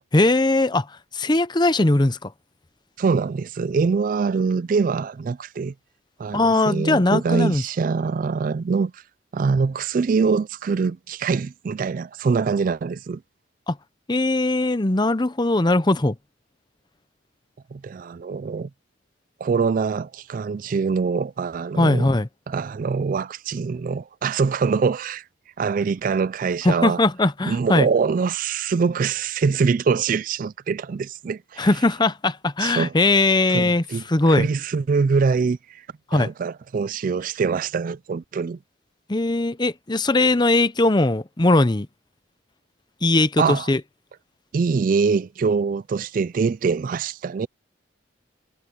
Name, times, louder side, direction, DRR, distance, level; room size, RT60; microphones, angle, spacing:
voice 1, 0.1-2.3 6.3-7.6 13.7-13.8 14.1-16.1 21.8-22.3 26.6-27.9 31.6-34.5 36.1-36.3 39.1-41.9 43.0-43.8, left 2 dB, 25° left, 0.7 m, -20 dB
voice 2, 3.0-5.7 6.2-9.0 9.3-13.2 17.7-18.7 19.4-22.1 22.5-25.2 25.6-27.0 27.5-31.7 32.6-32.9 33.5-34.0 34.3-35.9 36.1-38.6 43.4-43.7 44.5-47.5, right 5 dB, 45° right, 0.3 m, -24 dB
head